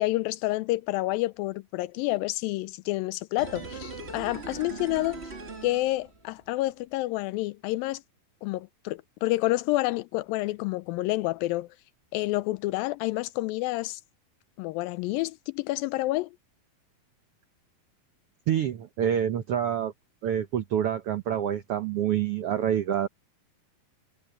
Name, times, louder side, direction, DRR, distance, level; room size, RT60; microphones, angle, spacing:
voice 1, 0.0-5.3 5.6-8.0 8.4-11.7 12.1-14.0 14.6-16.3, left 19 dB, 85° left, 2.3 m, -29 dB
sound 1, 3.4-6.5 6.8-6.9, right 4 dB, 25° right, 1.6 m, -40 dB
voice 2, 18.5-19.9 20.2-23.1, right 9 dB, 80° right, 1.3 m, -27 dB
omnidirectional pair, 4.0 m